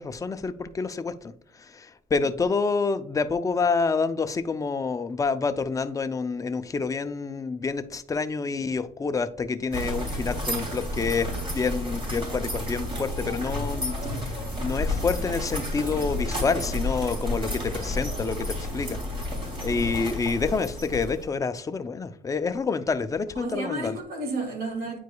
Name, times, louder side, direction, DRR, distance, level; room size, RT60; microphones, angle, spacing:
voice 1, 0.0-1.3 1.6-14.0 14.2-19.0 19.6-24.0, left 4 dB, 20° left, 0.5 m, -28 dB
sound 1, 9.7-21.3, left 1 dB, 30° right, 2.8 m, -31 dB
voice 2, 19.6-20.0 23.3-25.0, right 2 dB, 60° right, 2.0 m, -32 dB
9.2 x 4.7 x 2.3 m
cardioid pair, 110°, 17 cm